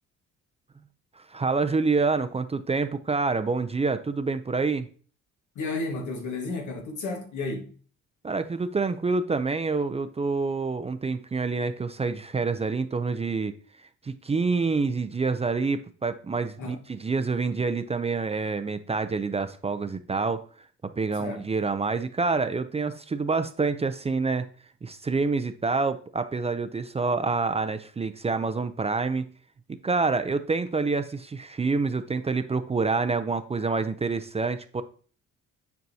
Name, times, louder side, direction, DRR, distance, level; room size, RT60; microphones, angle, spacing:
voice 1, 1.2-4.9 8.2-13.6 14.0-20.4 20.8-24.5 24.8-29.3 29.7-34.8, right 4 dB, 20° right, 0.5 m, -27 dB
voice 2, 5.5-7.7 16.6-16.8 21.1-21.5, left 3 dB, 75° left, 1.6 m, -32 dB
9.3 x 4.5 x 2.7 m
cardioid pair, 90°, 30 cm